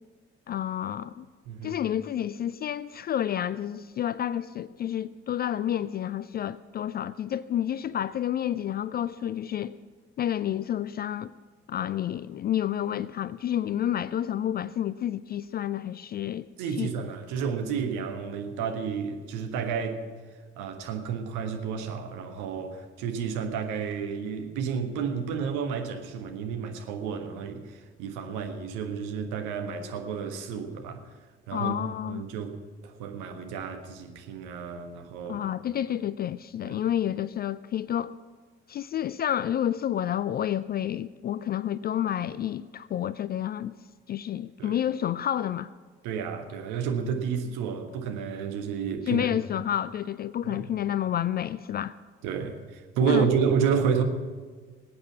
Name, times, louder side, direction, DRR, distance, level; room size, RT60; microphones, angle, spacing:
voice 1, 0.5-1.3 1.6-9.7 10.2-11.3 11.7-16.5 16.8-16.9 31.5-32.2 35.3-38.1 38.7-43.8 44.1-45.7 49.1-51.9 53.0-53.3, left 10 dB, 30° left, 0.3 m, -29 dB
voice 2, 16.6-20.0 20.6-31.1 31.5-31.8 32.1-35.4 36.6-36.8 44.6-44.8 46.0-49.3 50.4-50.6 52.2-54.0, right 6 dB, 60° right, 1.5 m, -30 dB
20.5 x 8.7 x 6.0 m
figure-of-eight pair, 45°, 35 cm